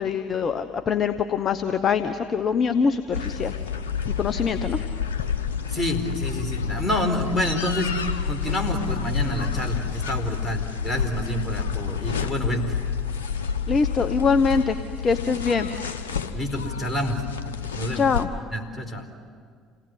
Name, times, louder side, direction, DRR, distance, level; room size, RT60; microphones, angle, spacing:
voice 1, 0.0-3.5 4.2-4.8 13.7-14.8 15.0-15.7 17.9-18.3, left 5 dB, 40° left, 9 dB, 1.1 m, -23 dB
sound 1, 3.1-18.3, left 7 dB, 80° left, 1.1 m, -29 dB
voice 2, 5.7-12.7 16.3-17.3 17.7-18.1 18.5-19.0, equal, 20° left, 4 dB, 4.6 m, -28 dB
28.0 x 18.5 x 9.7 m, 2.1 s
hypercardioid pair, 60°, 0 cm